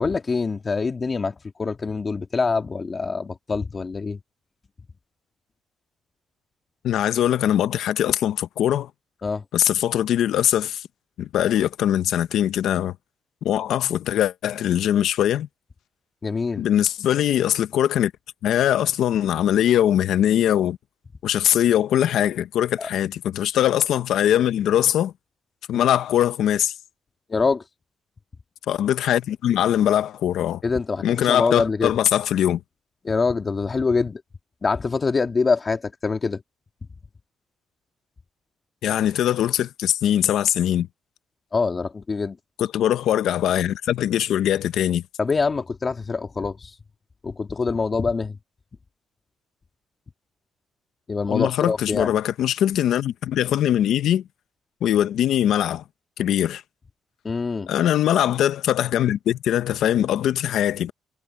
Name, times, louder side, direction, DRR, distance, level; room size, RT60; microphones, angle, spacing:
voice 1, 0.0-4.2 9.2-9.4 16.2-16.7 22.8-22.9 25.7-25.9 27.3-27.6 30.6-31.9 33.1-34.2 34.6-36.4 41.5-42.4 45.2-46.8 47.2-48.4 51.1-52.1 57.2-57.7, left 4 dB, 35° left, 1.8 m, -25 dB
voice 2, 6.8-8.9 9.5-10.8 11.2-12.9 13.4-15.5 16.6-18.1 18.4-20.8 21.2-25.1 25.7-26.7 28.7-30.6 31.0-32.6 38.8-40.9 42.6-45.0 51.3-54.2 54.8-55.8 56.2-56.6 57.7-60.9, left 11 dB, 75° left, 1.0 m, -21 dB
cardioid pair, 90°, 0 cm